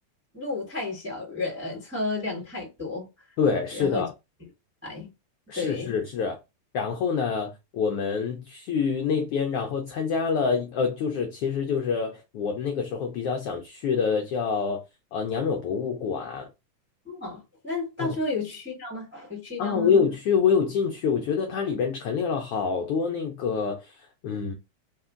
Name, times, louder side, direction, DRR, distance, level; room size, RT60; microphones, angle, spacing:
voice 1, 0.3-3.1 3.7-4.0 4.8-5.1 5.5-5.9 17.0-19.9, left 3 dB, 10° right, 0.7 m, -32 dB
voice 2, 3.4-4.1 5.5-6.4 6.7-14.8 15.1-16.5 18.0-18.2 19.6-24.5, left 6 dB, 90° left, 1.2 m, -26 dB
4.7 x 2.5 x 3.6 m
omnidirectional pair, 3.3 m